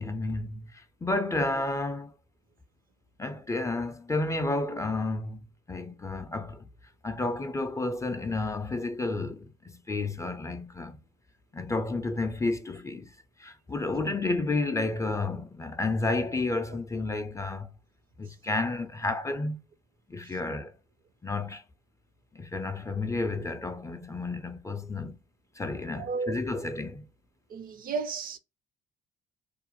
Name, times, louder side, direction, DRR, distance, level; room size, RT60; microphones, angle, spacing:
voice 1, 0.0-2.1 3.2-6.7 7.0-11.0 11.5-17.7 18.2-19.6 20.1-20.7 21.2-21.6 22.3-25.2 25.6-27.0, left 2 dB, 15° left, 0.3 m, -31 dB
voice 2, 26.0-26.4 27.5-28.4, right 4 dB, 50° right, 0.4 m, -33 dB
2.4 x 2.0 x 2.9 m
supercardioid pair, 65°, 18 cm